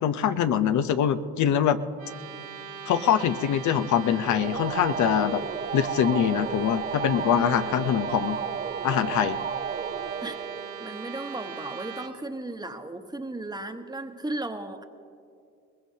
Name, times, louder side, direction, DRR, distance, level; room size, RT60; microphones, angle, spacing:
voice 1, 0.0-1.8 2.9-5.4 5.7-8.4 8.8-9.4, left 9 dB, 75° left, 10 dB, 0.7 m, -24 dB
sound 1, 1.9-12.1, right 7 dB, 80° right, 1.8 m, -40 dB
sound 2, 4.1-11.5, right 7 dB, 35° right, 0.6 m, -33 dB
voice 2, 7.3-7.9 10.2-10.4 10.8-14.8, right 2 dB, 15° right, 6 dB, 1.1 m, -35 dB
22.0 x 20.0 x 2.8 m, 2.4 s
cardioid pair, 90°, 30 cm